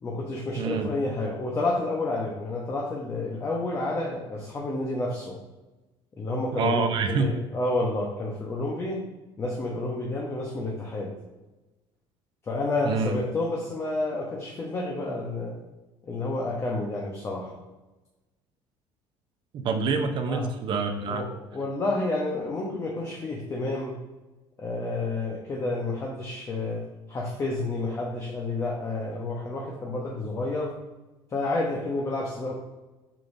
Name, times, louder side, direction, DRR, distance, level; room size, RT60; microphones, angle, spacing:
voice 1, 0.0-5.4 6.2-9.0 9.4-11.1 12.5-15.5 16.0-17.6 20.3-20.5 21.1-24.0 24.6-26.8 27.1-30.8 31.3-32.5, left 2 dB, 25° left, -2 dB, 1.0 m, -30 dB
voice 2, 0.6-0.9 6.5-7.3 12.8-13.2 19.5-21.3, right 4 dB, 50° right, 6 dB, 0.8 m, -26 dB
7.5 x 5.3 x 2.7 m, 1.1 s
cardioid pair, 135°, 11 cm